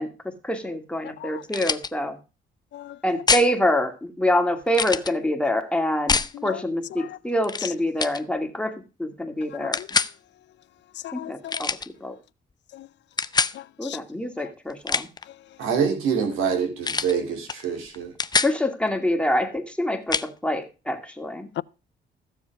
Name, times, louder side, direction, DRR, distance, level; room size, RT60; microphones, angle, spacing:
voice 1, 0.0-2.2 3.0-6.2 6.4-9.8 11.1-12.2 13.8-15.1 18.4-21.5, left 1 dB, 5° left, 2.4 m, -26 dB
sound 1, 1.5-1.9 3.3-3.5 4.7-5.1 6.1-6.3 7.4-7.7 8.0-8.2 9.7-10.1 11.5-11.9 13.2-13.6 14.7-15.2 16.8-17.1 17.5-17.6 17.9-18.5 20.1-20.3, left 4 dB, 20° left, 0.6 m, -24 dB
voice 2, 2.7-3.2 6.4-6.6 7.0-7.1 9.6-9.9 11.0-11.5 13.6-14.0 21.6-21.7, left 13 dB, 65° left, 0.5 m, -36 dB
voice 3, 15.6-18.1, right 7 dB, 90° right, 2.9 m, -25 dB
14.5 x 7.3 x 4.7 m
cardioid pair, 90°, 20 cm